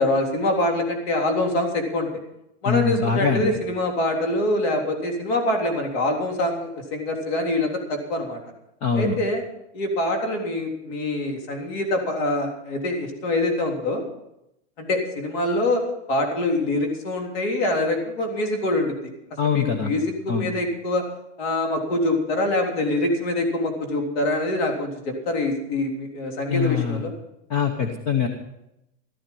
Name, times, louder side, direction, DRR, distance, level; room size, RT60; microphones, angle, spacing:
voice 1, 0.0-2.1 2.6-8.4 8.9-9.4 9.7-14.0 14.8-15.8 16.1-19.0 19.4-21.1 21.4-27.1, left 1 dB, 50° left, 2 dB, 3.6 m, -24 dB
voice 2, 2.6-3.6 8.8-9.2 19.4-19.9 20.3-20.5 26.5-27.0 27.5-28.3, left 6 dB, 25° left, 6 dB, 1.0 m, -23 dB
13.5 x 13.5 x 5.5 m, 0.84 s
supercardioid pair, 175°, 36 cm